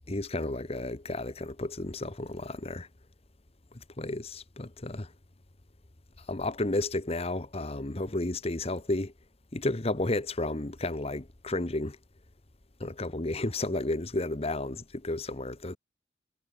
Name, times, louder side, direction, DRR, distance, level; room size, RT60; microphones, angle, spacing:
voice 1, 0.1-2.9 4.0-5.1 6.3-9.1 9.5-12.0 12.8-15.8, left 2 dB, 35° left, 1.2 m, -32 dB
head